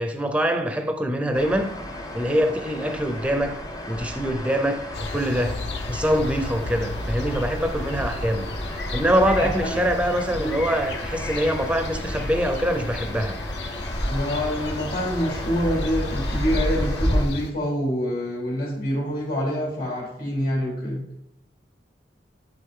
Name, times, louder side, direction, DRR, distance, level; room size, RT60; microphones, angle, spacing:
voice 1, 0.0-1.7 2.1-5.6 5.9-8.5 8.9-13.4, equal, 5° right, 0.6 m, -24 dB
sound 1, 1.3-17.3, equal, 20° left, 0.9 m, -32 dB
sound 2, 4.9-17.5, left 2 dB, 65° left, 0.7 m, -33 dB
voice 2, 9.3-9.8 10.4-10.6 14.1-21.0, equal, 50° left, 3.0 m, -26 dB
11.0 x 3.9 x 3.8 m
head